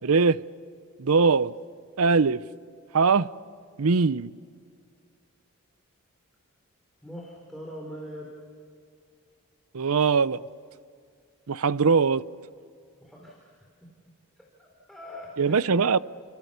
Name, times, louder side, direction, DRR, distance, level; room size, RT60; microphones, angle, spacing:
voice 1, 0.0-0.4 1.0-1.5 2.0-2.4 2.9-3.3 3.8-4.3 9.7-10.4 11.5-12.2 15.4-16.0, right 5 dB, 75° right, 0.6 m, -21 dB
voice 2, 7.0-8.3 13.0-13.5 14.4-15.7, equal, ahead, 4.0 m, -42 dB
30.0 x 26.5 x 6.8 m
head